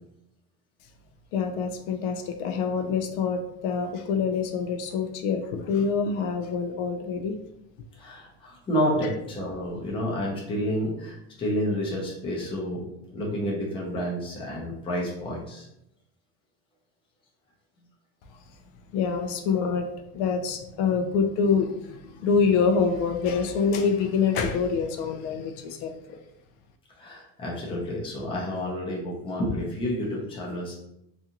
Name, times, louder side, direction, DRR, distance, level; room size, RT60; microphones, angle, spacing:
voice 1, 1.3-7.3 18.9-19.8 20.1-26.2, left 5 dB, 85° left, 6 dB, 0.5 m, -26 dB
voice 2, 8.0-12.8 13.1-15.7 27.0-30.8, equal, 15° left, -3 dB, 0.5 m, -30 dB
2.5 x 2.4 x 2.8 m, 0.80 s
cardioid pair, 170°, 32 cm